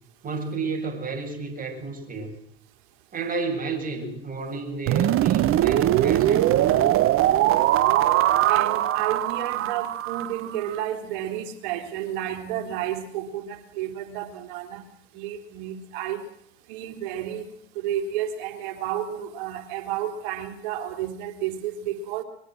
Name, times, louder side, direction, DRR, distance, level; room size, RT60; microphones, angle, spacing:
voice 1, 0.2-2.3 3.1-6.9, right 3 dB, 25° right, 3 dB, 7.3 m, -32 dB
sound 1, 4.9-10.8, right 13 dB, 45° right, 1.0 m, -21 dB
voice 2, 8.5-14.8 15.1-16.2 16.7-17.5 17.7-22.2, right 10 dB, 65° right, 6 dB, 3.3 m, -31 dB
23.5 x 22.0 x 6.3 m, 0.73 s
hypercardioid pair, 80°, 31 cm